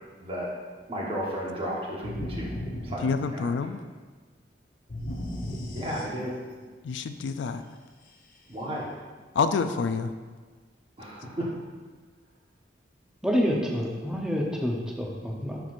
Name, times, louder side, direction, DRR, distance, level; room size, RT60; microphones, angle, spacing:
voice 1, 0.2-0.5 0.9-2.5 2.8-3.5 5.7-6.3 8.5-8.9 11.0-11.5, equal, 30° right, -4 dB, 1.2 m, -33 dB
sound 1, 2.0-3.8 4.9-6.6, left 1 dB, 50° left, 0.7 m, -36 dB
voice 2, 3.0-3.8 6.8-7.6 9.4-10.1, left 5 dB, 75° left, 10 dB, 0.3 m, -27 dB
voice 3, 13.2-15.6, equal, 5° right, -2 dB, 0.7 m, -28 dB
9.8 x 4.6 x 2.5 m, 1.4 s
head